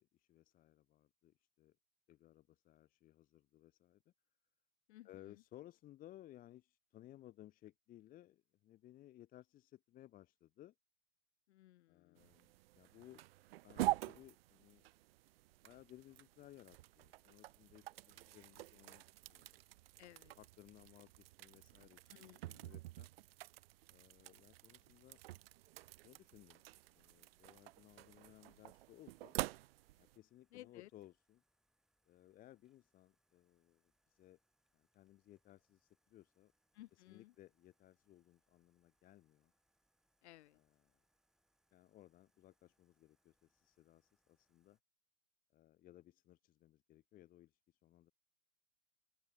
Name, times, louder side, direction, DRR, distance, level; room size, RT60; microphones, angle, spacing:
voice 1, 0.0-1.8 2.1-4.0 5.0-10.7 11.9-13.2 13.6-14.8 15.6-19.6 20.4-22.0 22.6-23.1 23.9-25.2 26.0-26.6 26.9-29.4 30.0-31.4 32.1-33.8 34.1-34.4 34.7-36.5 37.1-39.5 41.7-44.8 45.5-48.1, left 14 dB, 20° left, 1.2 m, -61 dB
voice 2, 4.9-5.4 11.5-12.3 20.0-20.3 22.1-22.7 30.5-30.9 36.7-37.3 40.2-40.6, left 17 dB, 50° left, 1.7 m, -59 dB
sound 1, 12.2-30.2, right 17 dB, 45° right, 0.5 m, -47 dB
sound 2, 26.5-44.8, right 1 dB, ahead, 3.3 m, -85 dB
open air
hypercardioid pair, 150°, 42 cm